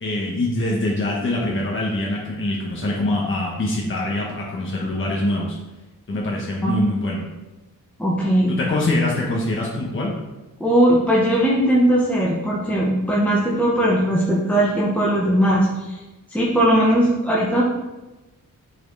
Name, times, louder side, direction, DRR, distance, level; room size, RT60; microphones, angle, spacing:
voice 1, 0.0-5.6 6.1-7.3 8.5-10.1, left 1 dB, 35° left, -3 dB, 1.2 m, -24 dB
voice 2, 8.0-8.6 10.6-16.0 16.3-17.6, right 1 dB, 5° left, -5 dB, 1.0 m, -19 dB
9.0 x 4.4 x 4.0 m, 1.1 s
wide cardioid pair, 135°, 34 cm